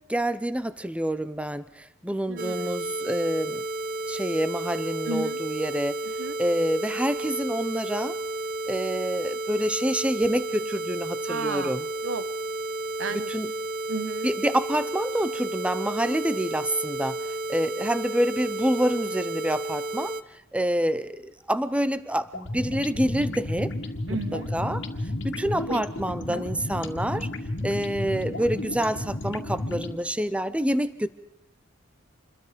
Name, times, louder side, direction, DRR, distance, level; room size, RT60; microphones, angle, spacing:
voice 1, 0.1-3.6 4.1-6.0 6.4-8.2 8.7-11.9 13.1-13.5 14.2-20.2 20.5-23.7 24.3-24.8 25.2-27.3 27.6-31.1, equal, 5° right, 13 dB, 0.8 m, -27 dB
voice 2, 2.3-2.7 5.1-5.4 6.2-6.3 11.3-11.8 12.0-12.2 13.0-13.3 13.9-14.3 24.1-24.5 25.4-25.8 26.3-26.4, right 3 dB, 70° right, 12 dB, 1.4 m, -33 dB
sound 1, 2.4-20.2, right 2 dB, 45° right, 0.9 m, -32 dB
sound 2, 22.3-30.0, left 1 dB, 65° left, 2.1 m, -32 dB
28.0 x 21.5 x 5.2 m, 0.86 s
head